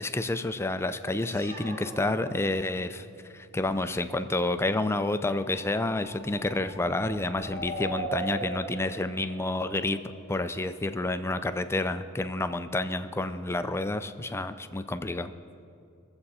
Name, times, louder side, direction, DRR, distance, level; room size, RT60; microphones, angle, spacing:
voice 1, 0.0-3.1 3.3-10.0 10.3-15.3, left 2 dB, 10° left, 10 dB, 0.4 m, -29 dB
sound 1, 1.2-3.1, equal, 30° right, 2.7 m, -44 dB
sound 2, 4.9-10.6, right 1 dB, 60° right, 1.8 m, -39 dB
23.0 x 7.8 x 4.2 m, 2.5 s
head